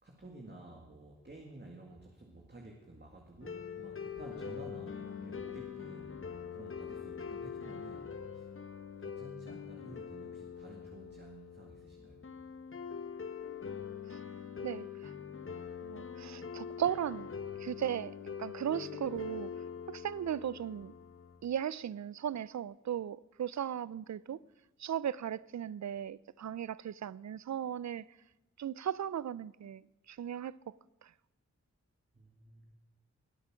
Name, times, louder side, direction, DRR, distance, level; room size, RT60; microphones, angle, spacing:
voice 1, 0.0-6.2 6.5-8.5 9.0-12.2 32.1-32.7, right 2 dB, 35° right, 2.2 m, -52 dB
sound 1, 3.4-21.4, left 7 dB, 45° left, 1.3 m, -44 dB
voice 2, 14.6-15.1 15.8-17.3 17.6-19.5 19.9-21.0 21.4-24.4 24.8-28.0 28.6-30.8 31.0-31.1, right 9 dB, 65° right, 0.5 m, -37 dB
21.5 x 8.3 x 6.3 m
wide cardioid pair, 65°, 30 cm